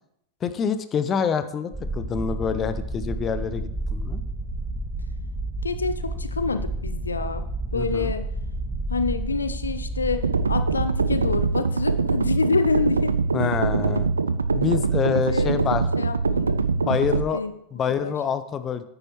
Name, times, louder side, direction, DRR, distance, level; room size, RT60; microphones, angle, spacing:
voice 1, 0.4-4.2 7.7-8.1 13.3-14.1 14.5-15.8 16.7-17.4 17.7-18.8, left 7 dB, 25° left, 12 dB, 0.6 m, -26 dB
sound 1, 1.7-11.5, right 2 dB, 10° right, 2.2 m, -31 dB
voice 2, 5.6-7.4 7.7-8.3 8.9-13.2 13.4-13.5 15.1-15.6 16.0-16.6 16.8-17.0 17.3-17.5 17.9-18.1, left 4 dB, 75° left, 11 dB, 0.4 m, -27 dB
sound 2, 10.2-17.2, right 4 dB, 75° right, 0.3 m, -23 dB
9.7 x 8.6 x 3.1 m, 0.78 s
figure-of-eight pair, 90°, 0 cm